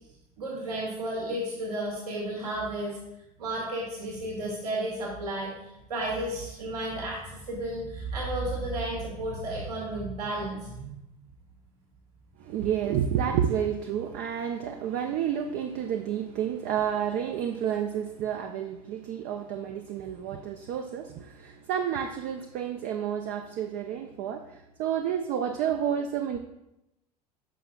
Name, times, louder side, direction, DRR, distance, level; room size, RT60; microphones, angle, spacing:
voice 1, 0.4-3.0 3.4-10.7, right 1 dB, 75° right, -3 dB, 2.0 m, -32 dB
voice 2, 12.4-26.4, right 9 dB, 50° right, 5 dB, 0.5 m, -30 dB
11.0 x 5.8 x 2.3 m, 0.88 s
figure-of-eight pair, 70°, 20 cm